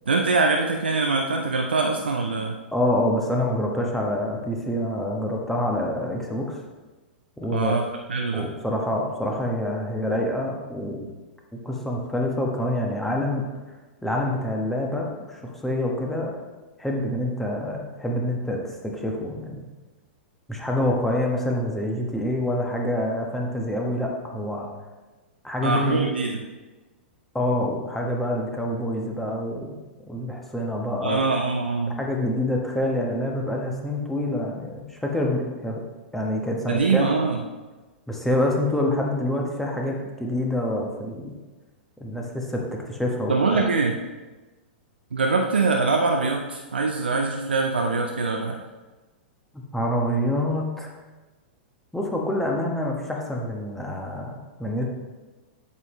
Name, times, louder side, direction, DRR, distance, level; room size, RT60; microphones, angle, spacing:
voice 1, 0.1-2.6 7.5-8.5 25.6-26.4 31.0-32.0 36.7-37.4 43.3-43.9 45.1-48.6, right 3 dB, 80° right, 2 dB, 0.6 m, -23 dB
voice 2, 2.7-6.6 7.4-7.8 8.3-11.1 11.6-13.4 14.0-16.4 16.8-19.7 20.5-24.7 25.4-26.0 27.3-29.8 30.1-31.3 32.0-35.8 36.1-37.1 38.1-41.4 42.0-43.6 49.5-50.9 51.9-54.9, left 1 dB, 5° left, -1 dB, 1.3 m, -26 dB
8.1 x 7.2 x 3.1 m, 1.2 s
figure-of-eight pair, 105°, 6 cm